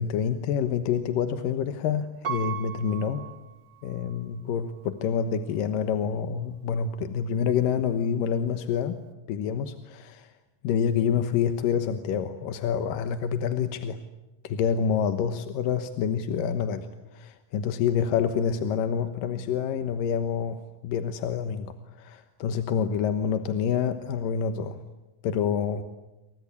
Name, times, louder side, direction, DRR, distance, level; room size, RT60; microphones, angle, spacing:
voice 1, 0.0-3.2 3.8-9.0 9.3-10.3 10.6-14.0 14.4-16.9 17.1-24.8 25.2-25.8, left 7 dB, 90° left, 9 dB, 2.9 m, -27 dB
Piano, 2.2-4.2 4.8-4.9, right 9 dB, 35° right, 1.6 m, -37 dB
28.0 x 24.5 x 8.4 m, 1.0 s
omnidirectional pair, 3.8 m